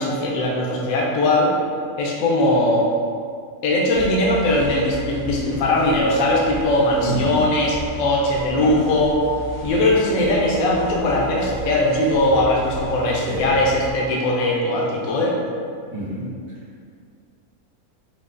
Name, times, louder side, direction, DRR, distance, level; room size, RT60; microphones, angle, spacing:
voice 1, 0.0-1.5 2.0-2.9 3.6-9.2 9.6-15.4, left 1 dB, 75° left, -2 dB, 1.0 m, -20 dB
sound 1, 3.9-13.9, equal, 45° right, 0.9 m, -35 dB
voice 2, 7.0-7.5 8.6-8.8 13.2-13.6 15.9-16.3, right 1 dB, 80° right, -12 dB, 1.7 m, -27 dB
5.1 x 2.0 x 2.4 m, 2.2 s
omnidirectional pair, 1.5 m